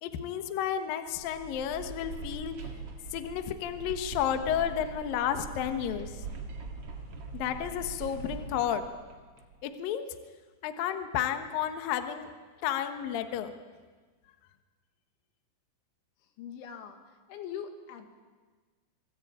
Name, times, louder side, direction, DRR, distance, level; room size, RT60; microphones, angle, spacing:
voice 1, 0.0-2.5 3.1-6.2 7.3-8.8 9.6-10.1 10.6-12.3 12.6-13.5, left 9 dB, 65° left, 7 dB, 2.6 m, -32 dB
sound 1, 1.1-9.6, right 4 dB, 45° right, 2.1 m, -42 dB
voice 2, 16.4-17.0 17.3-18.1, left 8 dB, 85° left, 6 dB, 4.2 m, -41 dB
26.5 x 19.5 x 8.8 m, 1.4 s
omnidirectional pair, 5.3 m